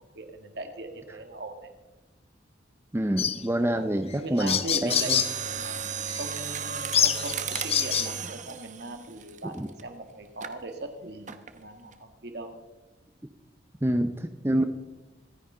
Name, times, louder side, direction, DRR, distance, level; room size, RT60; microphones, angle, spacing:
voice 1, 0.2-1.7 3.3-3.5 3.7-5.8 6.1-12.5, right 2 dB, 65° right, 6 dB, 1.9 m, -39 dB
voice 2, 2.9-5.2 9.4-9.7 13.8-14.6, right 1 dB, 15° right, 8 dB, 0.6 m, -27 dB
sound 1, 3.2-3.4 4.1-4.2 4.4-5.3 6.1-6.2 6.9-8.1, left 9 dB, 35° left, 0.5 m, -26 dB
Mechanisms, 4.8-9.8 10.4-10.6 11.3-11.6 11.9-12.0, right 7 dB, 40° right, 0.9 m, -34 dB
25.5 x 9.9 x 3.9 m, 1.1 s
head